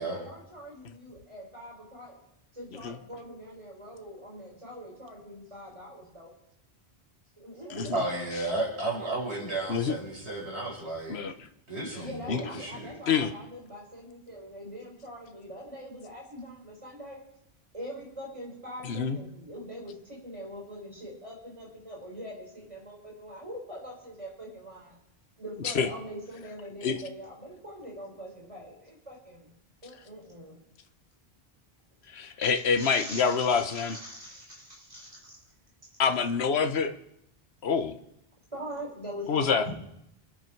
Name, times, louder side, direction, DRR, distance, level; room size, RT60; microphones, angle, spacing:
voice 1, 0.0-2.2 2.5-6.3 7.4-8.0 12.0-17.2 17.7-24.9 25.4-29.5 29.8-30.6 32.5-35.4 38.5-39.7, equal, 30° right, -2 dB, 5.5 m, -43 dB
voice 2, 7.9-11.2 11.7-13.0 39.7-39.8, right 2 dB, 90° right, -2 dB, 5.2 m, -33 dB
voice 3, 11.1-11.5 12.3-12.4 13.1-13.3 18.8-19.2 25.6-25.9 26.8-27.0 32.1-34.0 36.0-36.9 37.6-38.0 39.3-39.6, left 6 dB, 80° left, 8 dB, 1.2 m, -26 dB
27.5 x 9.4 x 4.6 m, 0.79 s
omnidirectional pair, 1.1 m